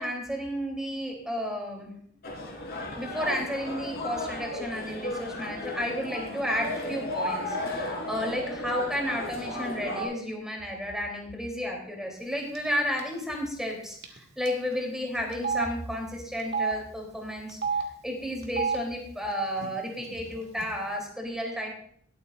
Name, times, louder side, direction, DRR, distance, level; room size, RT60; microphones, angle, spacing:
voice 1, 0.0-1.9 3.0-17.6 18.0-21.7, equal, 5° right, 0 dB, 3.1 m, -32 dB
sound 1, 2.2-10.0, left 1 dB, 55° left, 3.6 m, -34 dB
Telephone, 12.6-12.7 13.0-13.1 14.0-14.2 14.5-14.6 15.3-15.7 16.4-16.7 17.5-17.8 18.4-18.8 19.6-19.7 20.0-20.6, right 6 dB, 55° right, 1.8 m, -29 dB
21.0 x 8.4 x 2.5 m, 0.62 s
head